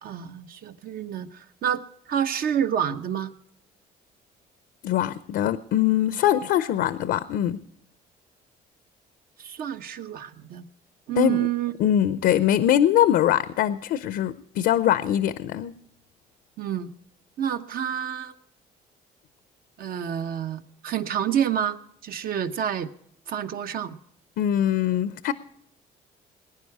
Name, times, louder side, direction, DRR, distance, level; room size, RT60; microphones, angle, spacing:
voice 1, 0.0-1.8 2.1-3.3 9.4-10.6 11.1-11.7 16.6-16.9 17.4-18.3 19.8-22.9 23.3-24.0, right 9 dB, 60° right, 9 dB, 1.0 m, -28 dB
voice 2, 4.8-7.6 11.2-11.5 11.8-15.7 24.4-25.3, left 11 dB, 75° left, 13 dB, 0.6 m, -22 dB
20.5 x 10.0 x 4.7 m, 0.69 s
cardioid pair, 110°, 17 cm